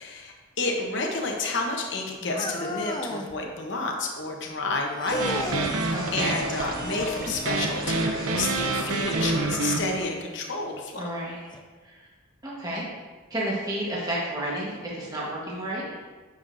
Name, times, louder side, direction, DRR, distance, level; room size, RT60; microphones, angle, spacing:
voice 1, 0.0-11.0, left 3 dB, 55° left, 1 dB, 0.9 m, -30 dB
sound 1, 2.3-3.4 5.0-5.7 6.7-7.4 9.5-9.6 10.5-10.6 11.5-11.6, left 1 dB, 20° left, 0.5 m, -33 dB
sound 2, 5.1-9.5, right 2 dB, 40° right, 1.1 m, -36 dB
sound 3, 5.2-10.1, right 3 dB, 90° right, 0.7 m, -27 dB
voice 2, 5.9-6.4 11.0-11.4 11.8-12.1 12.4-12.9 13.3-16.0, right 1 dB, 15° right, -6 dB, 1.3 m, -32 dB
9.7 x 6.4 x 2.6 m, 1.4 s
head